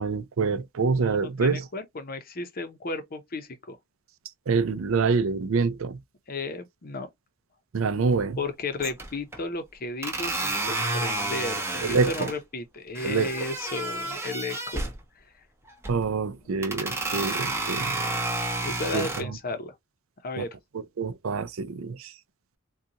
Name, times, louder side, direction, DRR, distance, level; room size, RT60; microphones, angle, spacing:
voice 1, 0.0-1.7 4.5-6.0 7.7-8.4 11.9-12.3 13.0-13.3 15.9-18.0 18.9-19.1 20.4-20.5 21.0-22.1, right 4 dB, 65° right, 0.5 m, -26 dB
voice 2, 1.0-3.8 6.3-7.1 8.4-14.8 18.6-19.8 20.2-20.5, left 3 dB, 45° left, 0.7 m, -34 dB
sound 1, 8.1-8.5 8.8-9.4 10.0-12.4 12.9-15.0 15.7-16.1 16.6-19.2, right 2 dB, 10° right, 0.8 m, -30 dB
3.9 x 2.3 x 2.8 m
head